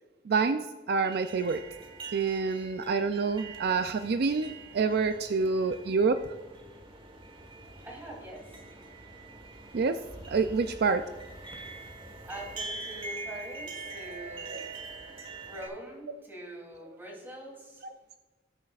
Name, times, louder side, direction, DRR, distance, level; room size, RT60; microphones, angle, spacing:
voice 1, 0.3-1.6 2.1-6.2 9.7-11.1 14.5-14.6, right 4 dB, 60° right, 9 dB, 0.4 m, -27 dB
sound 1, 1.0-15.7, right 3 dB, 30° right, 1.4 m, -44 dB
voice 2, 7.8-8.4 12.2-14.6 15.4-17.8, right 1 dB, 10° right, -2 dB, 3.1 m, -43 dB
18.0 x 7.5 x 2.4 m, 1.3 s
head